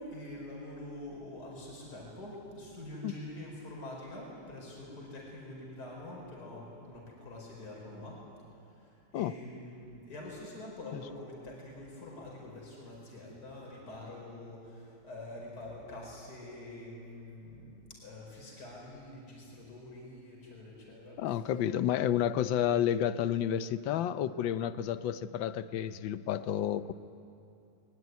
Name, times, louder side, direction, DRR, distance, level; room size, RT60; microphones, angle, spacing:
voice 1, 0.0-8.2 8.5-17.8 18.0-21.7, left 1 dB, 45° left, -2 dB, 5.6 m, -46 dB
voice 2, 21.2-26.9, left 10 dB, 70° left, 13 dB, 1.4 m, -30 dB
22.0 x 21.5 x 9.5 m, 2.6 s
omnidirectional pair, 2.4 m